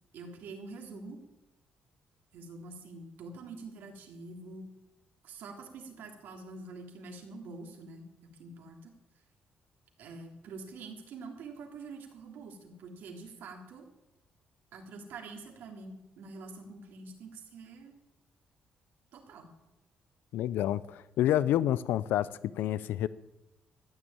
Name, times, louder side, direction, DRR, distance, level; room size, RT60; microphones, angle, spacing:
voice 1, 0.1-1.2 2.3-4.7 5.2-8.1 8.4-8.9 10.0-13.9 14.7-18.0 19.1-19.5, right 3 dB, 75° right, 3 dB, 3.1 m, -46 dB
voice 2, 20.3-22.3 22.6-23.1, left 12 dB, 90° left, 17 dB, 0.5 m, -28 dB
14.5 x 10.0 x 8.9 m, 0.96 s
cardioid pair, 130°, 3 cm